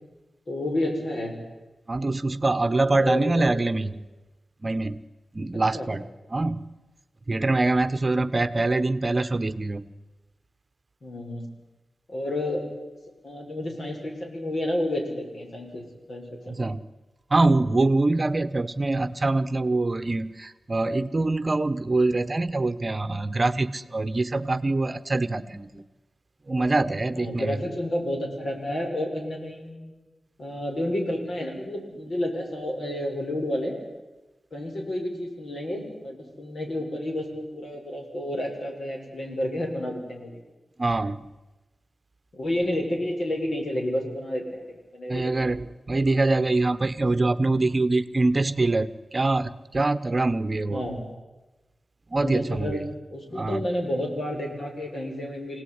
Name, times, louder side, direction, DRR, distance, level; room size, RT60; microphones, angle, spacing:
voice 1, 0.5-1.3 3.0-3.5 5.7-5.9 11.0-11.5 12.1-12.6 13.2-16.6 27.1-30.0 30.4-33.7 34.5-40.4 42.3-44.6 44.9-45.5 50.7-51.0 52.2-52.8 53.1-55.6, left 1 dB, 60° left, 1 dB, 6.7 m, -30 dB
voice 2, 1.9-4.0 4.6-5.0 5.3-6.0 6.3-6.7 7.3-9.9 16.5-16.8 17.3-25.8 26.5-27.6 40.8-41.3 45.1-50.8 52.1-52.9 53.3-53.6, right 2 dB, 30° right, 13 dB, 1.1 m, -24 dB
26.5 x 18.0 x 9.7 m, 1.1 s
wide cardioid pair, 115°, 0 cm